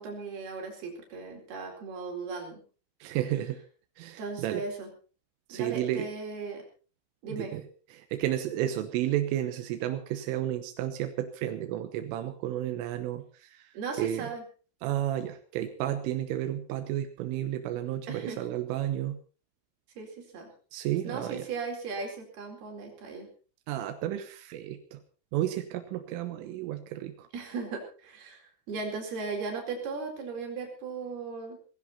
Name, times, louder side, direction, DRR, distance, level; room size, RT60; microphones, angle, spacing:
voice 1, 0.0-2.6 4.2-4.9 5.5-6.6 7.2-7.5 13.7-14.4 18.1-18.4 20.0-20.5 21.0-23.3 27.3-28.4 28.7-31.6, right 4 dB, 55° right, 1 dB, 6.2 m, -37 dB
voice 2, 3.0-3.6 4.0-4.6 5.5-6.1 7.3-7.6 7.9-13.7 14.0-14.3 14.8-19.2 20.7-21.5 23.7-25.0 25.3-27.3, right 12 dB, 90° right, 8 dB, 3.7 m, -32 dB
19.0 x 16.0 x 4.2 m, 0.38 s
omnidirectional pair, 5.5 m